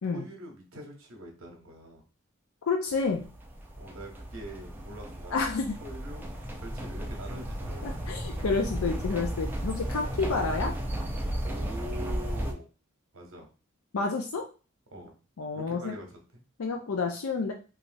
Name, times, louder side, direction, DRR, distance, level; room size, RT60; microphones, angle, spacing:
voice 1, 0.1-2.0 3.8-5.4 5.8-6.3 6.6-8.1 11.4-12.7 13.1-13.5 14.9-15.1 15.5-16.4, equal, 70° right, 2 dB, 0.9 m, -44 dB
voice 2, 2.7-3.2 5.3-5.8 7.8-10.7 13.9-14.5 15.4-16.0 16.6-17.5, left 4 dB, 85° left, 3 dB, 0.5 m, -29 dB
sound 1, 2.9-12.5, right 1 dB, 10° right, 0.3 m, -34 dB
3.1 x 2.5 x 2.6 m, 0.34 s
head